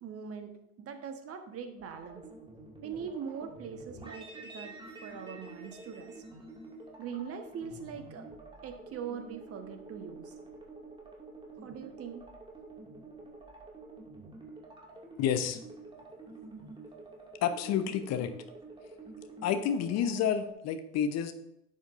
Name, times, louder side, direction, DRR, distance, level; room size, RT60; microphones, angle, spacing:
voice 1, 0.0-2.2 2.8-4.8 5.0-6.2 7.0-8.3 8.6-10.3 11.6-12.3, right 7 dB, 35° right, 7 dB, 1.3 m, -42 dB
sound 1, 1.8-20.5, right 3 dB, 10° right, 2.2 m, -48 dB
voice 2, 15.2-15.6 17.4-18.3 19.4-21.3, left 8 dB, 35° left, 10 dB, 0.8 m, -29 dB
11.5 x 8.0 x 2.6 m, 0.82 s
figure-of-eight pair, 80°, 43 cm